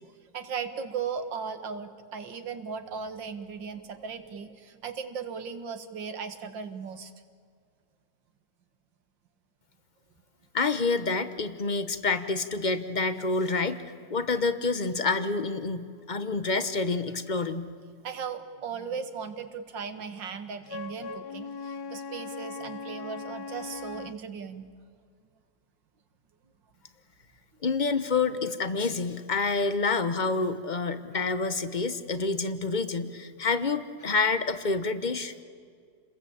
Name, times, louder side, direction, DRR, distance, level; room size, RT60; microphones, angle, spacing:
voice 1, 0.0-7.1 18.0-24.7, right 6 dB, 85° right, 9 dB, 2.3 m, -37 dB
voice 2, 10.5-13.8 14.1-17.7 27.6-35.3, left 4 dB, 30° left, 11 dB, 1.0 m, -28 dB
Wind instrument woodwind instrument, 20.7-24.2, left 4 dB, 65° left, 1.3 m, -39 dB
29.5 x 21.0 x 8.8 m, 2.1 s
omnidirectional pair, 1.9 m